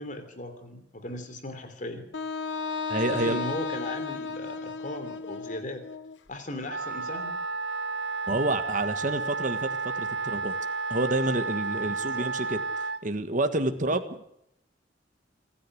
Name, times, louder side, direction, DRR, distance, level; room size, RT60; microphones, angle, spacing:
voice 1, 0.0-2.1 3.1-5.8 6.3-7.4 11.9-12.3, left 1 dB, 45° left, 8 dB, 3.1 m, -37 dB
Wind instrument woodwind instrument, 2.1-6.2, left 4 dB, 80° left, 0.9 m, -34 dB
voice 2, 2.9-3.4 8.3-9.7 9.9-10.5 10.9-12.6 13.0-14.2, right 2 dB, 45° right, 8 dB, 1.6 m, -28 dB
Wind instrument woodwind instrument 2, 6.7-13.0, right 4 dB, 70° right, 0.9 m, -32 dB
26.5 x 10.5 x 10.0 m, 0.77 s
head